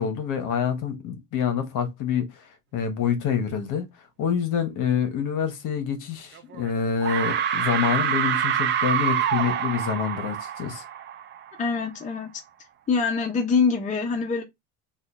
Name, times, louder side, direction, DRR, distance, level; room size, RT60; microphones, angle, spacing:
voice 1, 0.0-3.9 4.2-10.8, left 7 dB, 50° left, 1.0 m, -27 dB
sound 1, 6.4-6.7 7.0-11.6, right 9 dB, 30° right, 0.4 m, -26 dB
voice 2, 11.6-12.3 12.9-14.4, left 5 dB, 20° left, 0.7 m, -24 dB
2.7 x 2.4 x 3.4 m
supercardioid pair, 120°, 39 cm